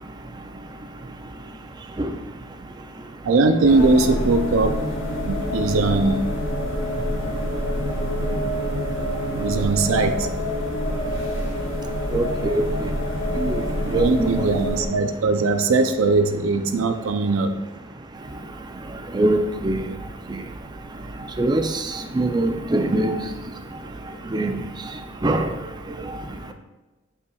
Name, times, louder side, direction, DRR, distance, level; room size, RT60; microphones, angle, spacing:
voice 1, 3.2-4.8 5.2-6.3 8.3-8.4 9.3-10.3 13.8-17.6, right 3 dB, 75° right, 8 dB, 0.4 m, -20 dB
sound 1, 3.6-14.8, equal, 80° left, 1.6 m, -26 dB
voice 2, 12.1-12.6 13.4-13.6 13.9-14.3 19.1-19.4 19.6-19.8 21.4-21.7 22.1-23.1 24.3-24.5 25.2-25.5, right 2 dB, 20° right, 7 dB, 0.4 m, -21 dB
8.2 x 5.5 x 2.3 m, 1.1 s
head